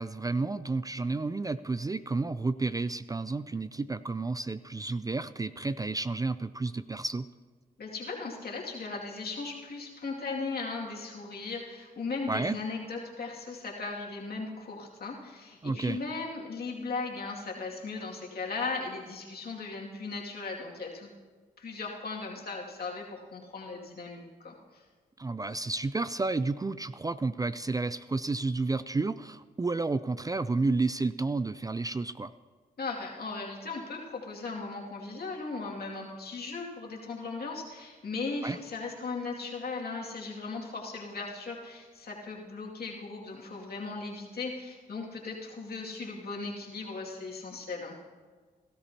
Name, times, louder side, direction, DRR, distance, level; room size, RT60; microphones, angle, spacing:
voice 1, 0.0-7.3 12.3-12.6 15.6-16.0 25.2-32.3 38.4-38.6, right 3 dB, 20° right, 14 dB, 0.4 m, -31 dB
voice 2, 7.8-21.1 21.6-24.8 32.8-48.0, left 4 dB, 65° left, -2 dB, 2.4 m, -37 dB
17.0 x 13.5 x 2.9 m, 1.5 s
cardioid pair, 60°, 17 cm